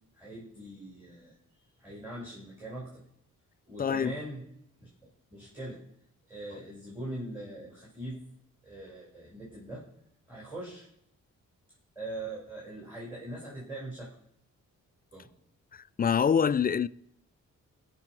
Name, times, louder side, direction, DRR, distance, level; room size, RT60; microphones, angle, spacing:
voice 1, 0.1-1.4 1.8-3.0 3.7-4.4 4.8-4.9 5.3-5.8 6.3-8.2 8.6-9.9 10.3-10.9 12.0-14.1 15.1-15.3, right 1 dB, 5° right, 5.3 m, -41 dB
voice 2, 3.8-4.1 15.7-16.9, left 7 dB, 30° left, 0.4 m, -25 dB
17.5 x 6.1 x 4.8 m
cardioid pair, 60°, 34 cm